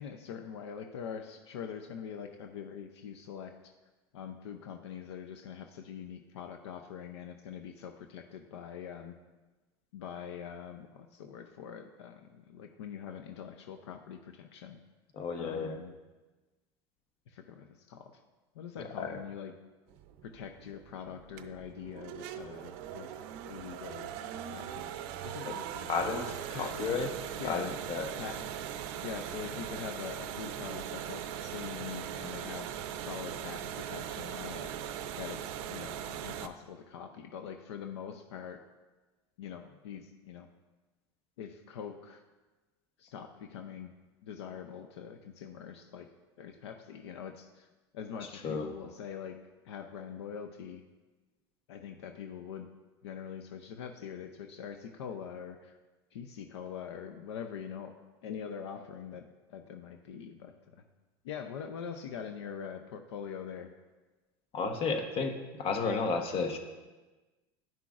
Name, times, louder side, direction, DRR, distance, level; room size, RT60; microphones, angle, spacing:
voice 1, 0.0-3.7 4.1-9.2 9.9-14.8 15.4-15.9 17.3-18.1 18.5-19.5 20.2-23.1 23.5-24.1 24.5-24.9 25.2-26.0 26.5-26.8 27.4-27.7 28.2-28.5 29.0-34.7 35.2-38.6 39.4-40.5 41.4-42.2 43.0-43.9 44.2-46.1 46.4-47.7 47.9-49.4 49.6-50.8 51.7-52.7 53.0-55.8 56.1-57.9 58.2-59.2 59.5-60.8 61.2-63.7, left 7 dB, 80° left, 6 dB, 0.5 m, -43 dB
voice 2, 15.2-15.8 18.8-19.2 25.4-25.5 25.9-27.1 27.4-28.1 48.4-48.7 64.5-66.6, left 4 dB, 40° left, 5 dB, 1.0 m, -32 dB
sound 1, 19.9-36.5, right 9 dB, 60° right, 0.5 m, -40 dB
10.5 x 5.9 x 2.5 m, 1.2 s
hypercardioid pair, 100°, 14 cm